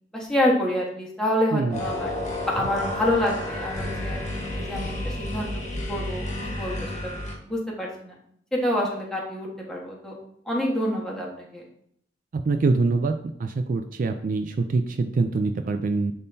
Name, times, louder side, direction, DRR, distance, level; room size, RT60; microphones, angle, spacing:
voice 1, 0.1-2.1 2.4-4.2 4.5-5.6 5.9-7.1 7.4-8.2 8.5-10.2 10.4-11.6, left 1 dB, 5° left, -3 dB, 1.5 m, -27 dB
sound 1, 1.7-7.4, left 1 dB, 40° left, 1.5 m, -31 dB
voice 2, 12.3-16.1, right 3 dB, 50° right, 7 dB, 0.4 m, -24 dB
10.5 x 3.7 x 2.7 m, 0.69 s
head